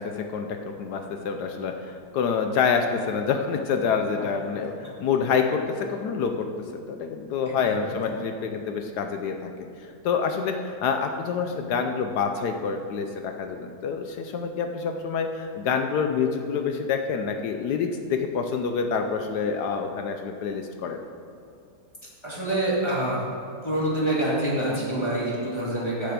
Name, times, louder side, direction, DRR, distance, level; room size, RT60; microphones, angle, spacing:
voice 1, 0.0-6.5 6.9-9.5 10.0-21.0, left 6 dB, 75° left, 5 dB, 0.9 m, -27 dB
voice 2, 7.5-7.9 22.2-23.2 23.6-26.1, right 1 dB, 15° left, -6 dB, 2.0 m, -26 dB
9.5 x 6.7 x 6.7 m, 2.4 s
omnidirectional pair, 2.3 m